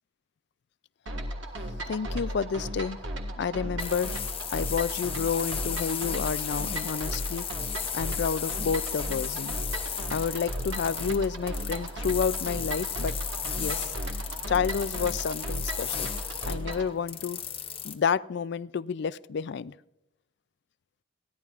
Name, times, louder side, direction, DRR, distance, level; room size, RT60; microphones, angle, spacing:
sound 1, 1.1-16.9, equal, 65° right, 1.6 m, -35 dB
voice 1, 1.9-3.0 3.4-4.1 4.5-7.5 7.9-9.6 10.1-13.2 13.6-13.9 14.5-16.1 16.4-17.4 17.8-19.7, left 6 dB, 55° left, 18 dB, 0.4 m, -30 dB
sound 2, 3.8-18.0, left 8 dB, 30° left, 0.9 m, -35 dB
29.5 x 11.0 x 2.5 m, 0.85 s
head